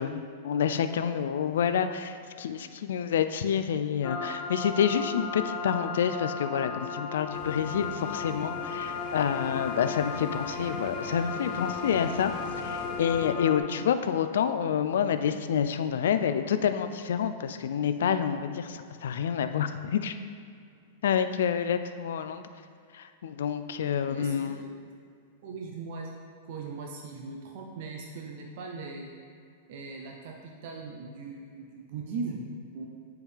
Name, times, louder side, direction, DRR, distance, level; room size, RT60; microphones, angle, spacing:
voice 1, 0.0-20.2 21.0-22.5 22.9-24.6, left 8 dB, 80° left, 10 dB, 0.3 m, -28 dB
sound 1, 4.0-13.6, left 5 dB, 25° left, 0.5 m, -35 dB
sound 2, 7.3-13.3, left 5 dB, 55° left, 0.8 m, -43 dB
sound 3, 8.8-13.2, left 1 dB, 5° left, 1.5 m, -52 dB
voice 2, 24.0-24.7 25.4-26.1 26.5-29.1 29.7-32.9, right 4 dB, 50° right, 0 dB, 0.7 m, -39 dB
7.3 x 4.5 x 3.5 m, 2.3 s
supercardioid pair, 160°, 0 cm